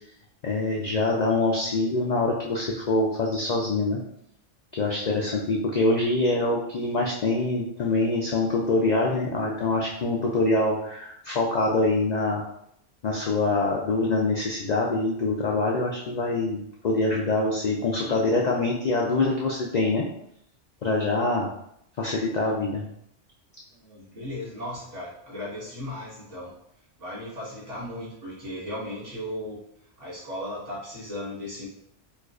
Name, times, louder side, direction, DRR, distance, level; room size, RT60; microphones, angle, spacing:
voice 1, 0.4-4.0 4.8-12.4 13.0-20.1 20.8-21.5 22.0-22.8, left 2 dB, 70° left, -1 dB, 0.4 m, -25 dB
voice 2, 23.8-26.5 27.0-29.6 30.0-31.7, left 1 dB, 75° right, -8 dB, 1.7 m, -36 dB
4.5 x 2.3 x 2.4 m, 0.73 s
omnidirectional pair, 1.3 m